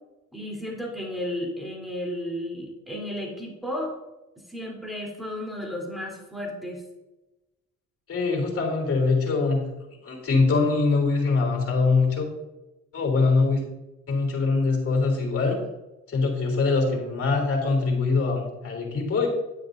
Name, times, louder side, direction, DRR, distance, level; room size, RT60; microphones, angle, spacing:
voice 1, 0.3-3.9 4.5-6.8, left 1 dB, ahead, -1 dB, 3.5 m, -33 dB
voice 2, 8.1-9.6 10.0-12.3 12.9-13.6 14.1-15.6 16.1-19.3, left 4 dB, 50° left, 1 dB, 3.6 m, -23 dB
11.0 x 9.3 x 2.7 m, 1.0 s
cardioid pair, 90°, 30 cm